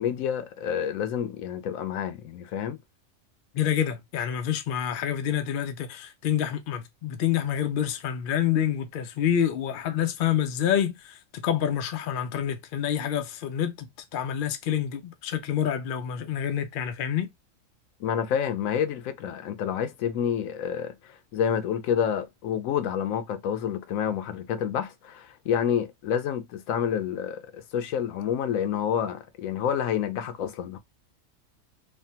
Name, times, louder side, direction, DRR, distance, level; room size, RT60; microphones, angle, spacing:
voice 1, 0.0-2.8 18.0-20.9 21.3-30.8, left 8 dB, 80° left, 1.0 m, -28 dB
voice 2, 3.5-13.9 14.1-17.3, left 9 dB, 65° left, 0.5 m, -27 dB
3.3 x 2.1 x 2.7 m
omnidirectional pair, 1.4 m